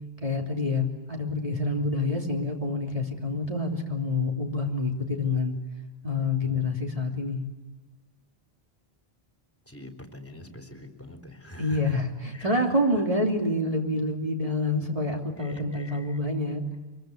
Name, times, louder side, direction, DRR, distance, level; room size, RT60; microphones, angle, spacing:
voice 1, 0.2-5.5 6.0-7.4 11.6-16.6, left 2 dB, 35° right, 0 dB, 3.4 m, -27 dB
voice 2, 9.7-12.0 12.3-12.6 14.9-15.1 15.4-16.0, left 1 dB, 15° left, 3 dB, 3.7 m, -44 dB
25.5 x 23.5 x 8.0 m, 1.2 s
omnidirectional pair, 1.1 m